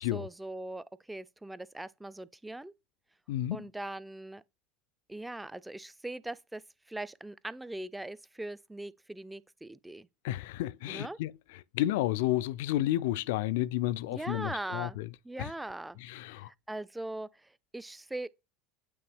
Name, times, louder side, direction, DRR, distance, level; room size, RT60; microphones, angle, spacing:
voice 1, 0.1-2.7 3.5-4.4 5.1-10.1 10.9-11.2 14.1-15.0 15.2-16.0 16.4-18.3, right 1 dB, 10° right, 0.4 m, -40 dB
voice 2, 3.3-3.7 10.2-11.3 11.7-15.1 15.4-15.5 16.0-16.5, left 14 dB, 70° left, 0.3 m, -31 dB
8.5 x 3.3 x 3.4 m
hypercardioid pair, 80°, 0 cm